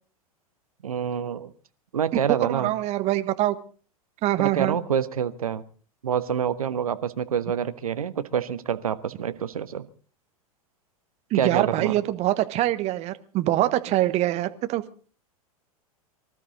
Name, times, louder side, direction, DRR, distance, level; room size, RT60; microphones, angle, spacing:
voice 1, 0.8-1.5 1.9-2.7 4.4-5.6 6.0-9.9 11.3-12.0, right 8 dB, 70° right, 11 dB, 1.2 m, -27 dB
voice 2, 2.5-3.5 4.2-4.7 11.3-14.8, right 15 dB, 35° right, 11 dB, 1.2 m, -24 dB
24.5 x 13.0 x 4.0 m, 0.41 s
figure-of-eight pair, 95°, 19 cm